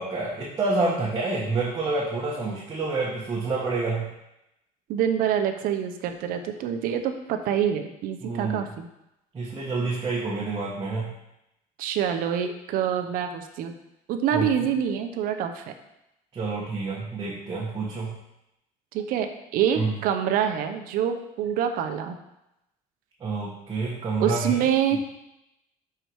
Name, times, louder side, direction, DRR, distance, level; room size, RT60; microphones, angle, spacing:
voice 1, 0.0-4.1 8.2-8.6 9.3-11.1 14.3-14.5 16.3-18.1 19.7-19.9 23.2-24.6, right 3 dB, 25° right, -6 dB, 1.5 m, -28 dB
voice 2, 4.9-8.9 11.8-13.7 14.1-15.7 18.9-19.3 19.5-22.1 24.2-25.0, right 9 dB, 70° right, 6 dB, 0.8 m, -26 dB
6.7 x 4.9 x 4.7 m, 0.87 s
cardioid pair, 140°, 15 cm